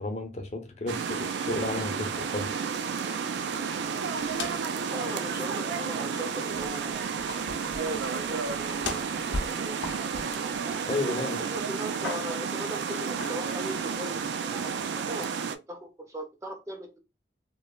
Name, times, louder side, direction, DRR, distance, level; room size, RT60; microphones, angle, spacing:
voice 1, 0.0-2.5 10.8-11.4, left 2 dB, 40° left, 0.5 m, -32 dB
sound 1, 0.9-15.6, right 6 dB, 75° right, 0.3 m, -32 dB
sound 2, 4.1-4.8 5.1-5.2 5.9-6.2 6.5-11.2 11.6-12.5 13.2-13.9, left 2 dB, 90° left, 0.6 m, -39 dB
voice 2, 4.7-7.2 7.7-9.8 10.1-10.3 10.8-15.3 15.7-17.0, right 1 dB, 15° right, 0.5 m, -39 dB
3.0 x 2.1 x 2.3 m
head